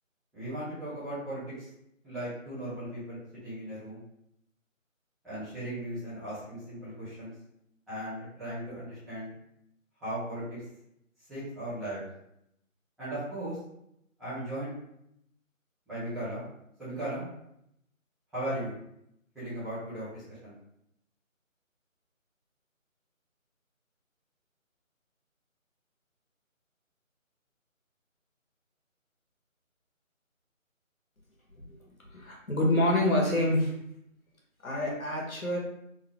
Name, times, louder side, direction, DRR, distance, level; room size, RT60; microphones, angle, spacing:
voice 1, 0.3-1.7 2.0-4.0 5.2-7.3 7.9-9.3 10.0-10.4 11.3-12.0 13.0-13.6 14.2-14.7 15.9-16.4 16.8-17.2 18.3-18.7 19.3-20.5, right 1 dB, ahead, -17 dB, 0.7 m, -37 dB
voice 2, 32.1-33.7 34.6-35.6, left 1 dB, 85° left, -2 dB, 1.2 m, -27 dB
3.8 x 2.0 x 2.9 m, 0.77 s
figure-of-eight pair, 160°, 41 cm